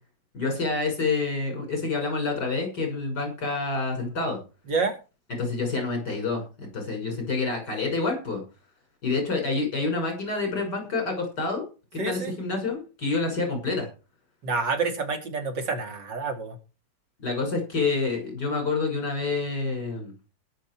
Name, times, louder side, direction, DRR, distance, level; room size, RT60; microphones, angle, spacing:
voice 1, 0.3-4.4 5.4-8.4 9.0-11.6 11.9-13.9 17.2-20.1, left 3 dB, 70° left, 3 dB, 6.5 m, -28 dB
voice 2, 12.0-12.3 14.4-16.6, right 4 dB, 90° right, 4 dB, 3.4 m, -28 dB
20.0 x 6.9 x 4.6 m, 0.32 s
omnidirectional pair, 1.9 m